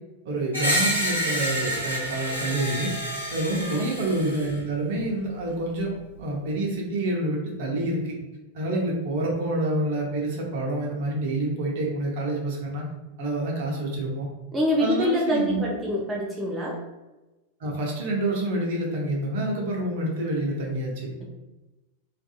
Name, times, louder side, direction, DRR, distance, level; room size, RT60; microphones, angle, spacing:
voice 1, 0.2-2.9 3.3-8.1 8.5-12.9 13.2-14.3 14.8-15.7 17.6-21.1, right 1 dB, 50° right, -2 dB, 0.7 m, -27 dB
Screech, 0.5-4.5, equal, 85° left, 0.7 m, -28 dB
voice 2, 3.5-3.9 14.5-16.8, equal, 15° right, -3 dB, 0.5 m, -25 dB
2.5 x 2.4 x 2.3 m, 1.1 s
figure-of-eight pair, 90°, 0 cm